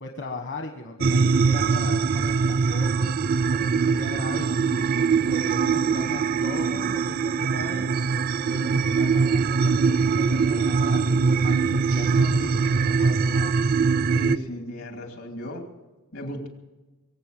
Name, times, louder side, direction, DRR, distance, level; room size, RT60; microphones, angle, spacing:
voice 1, 0.0-3.2 3.5-4.8 5.3-7.9 8.4-13.5, left 2 dB, 55° left, 3 dB, 1.2 m, -38 dB
sound 1, 1.0-14.4, right 5 dB, 45° right, 0.4 m, -22 dB
voice 2, 14.1-15.6 16.1-16.5, equal, 80° left, 3 dB, 2.7 m, -35 dB
23.0 x 8.0 x 7.6 m, 1.2 s
head